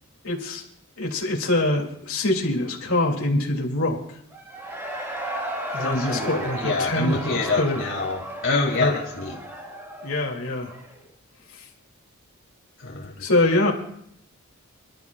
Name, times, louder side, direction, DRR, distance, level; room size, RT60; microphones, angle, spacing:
voice 1, 0.2-0.6 1.0-4.0 5.7-7.8 8.7-9.0 10.0-10.8 13.2-13.7, left 2 dB, 80° left, 0 dB, 2.6 m, -24 dB
Cheering / Crowd, 4.3-11.0, right 1 dB, 10° right, 1.9 m, -34 dB
voice 2, 5.8-9.4 12.8-13.1, left 3 dB, 65° left, -2 dB, 2.3 m, -26 dB
27.5 x 12.0 x 2.4 m, 0.70 s
head